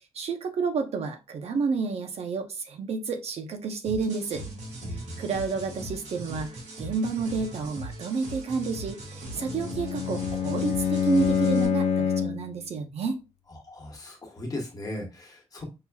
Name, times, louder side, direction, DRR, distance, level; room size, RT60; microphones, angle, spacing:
voice 1, 0.1-4.4 4.9-6.5 6.8-13.2, right 4 dB, 60° right, 5 dB, 0.7 m, -30 dB
sound 1, 3.9-11.7, right 2 dB, 80° right, 1.7 m, -39 dB
voice 2, 4.8-5.3 13.7-15.6, left 1 dB, 30° left, 1 dB, 1.2 m, -37 dB
Bowed string instrument, 9.3-12.5, left 7 dB, 60° left, 0.5 m, -26 dB
5.6 x 2.9 x 2.3 m, 0.27 s
wide cardioid pair, 165°, 12 cm